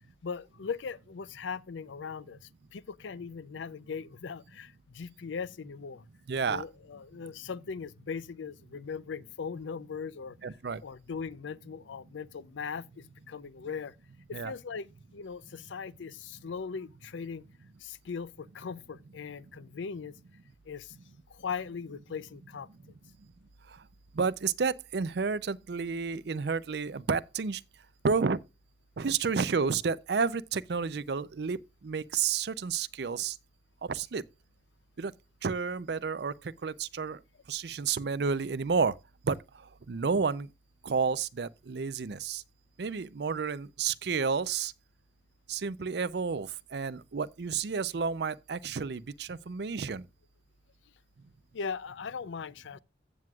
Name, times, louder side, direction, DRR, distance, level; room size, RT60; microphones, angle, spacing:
voice 1, 0.2-6.0 6.5-10.6 10.8-13.9 14.3-17.4 17.8-20.2 20.7-21.0 21.3-22.7 51.5-52.8, left 5 dB, 85° left, 0.5 m, -39 dB
voice 2, 6.3-6.6 10.4-10.8 14.3-14.5 24.1-27.6 28.0-28.4 29.0-31.6 31.8-33.4 33.9-34.2 35.0-35.1 35.4-37.2 37.5-38.9 39.2-39.4 39.9-40.5 40.8-42.4 42.8-44.7 45.5-50.0, right 5 dB, 60° right, 0.5 m, -31 dB
15.0 x 7.6 x 2.3 m
head